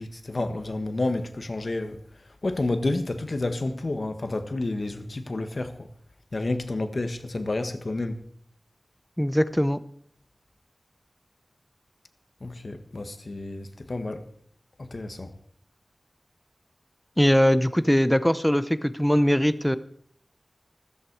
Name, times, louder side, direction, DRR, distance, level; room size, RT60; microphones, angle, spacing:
voice 1, 0.0-2.0 2.4-5.9 6.3-8.2 12.4-14.2 14.8-15.3, left 2 dB, 60° left, 1.5 m, -30 dB
voice 2, 9.2-9.8 17.2-19.8, equal, 5° left, 0.8 m, -21 dB
14.5 x 14.0 x 4.8 m
wide cardioid pair, 50°, 0 cm